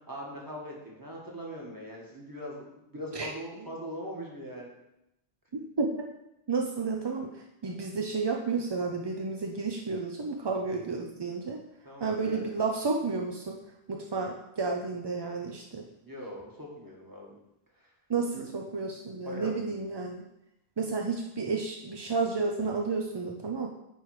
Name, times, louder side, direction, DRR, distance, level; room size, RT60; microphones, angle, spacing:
voice 1, 0.1-4.7 11.8-12.5 15.7-17.3 17.8-17.9 18.3-18.5 19.2-19.5, equal, 20° right, -2 dB, 1.4 m, -41 dB
voice 2, 6.5-7.4 7.6-11.6 12.0-13.6 13.9-15.8 18.1-20.2 20.8-23.7, right 4 dB, 40° right, 1 dB, 0.4 m, -31 dB
8.7 x 3.3 x 4.7 m, 0.87 s
omnidirectional pair, 1.1 m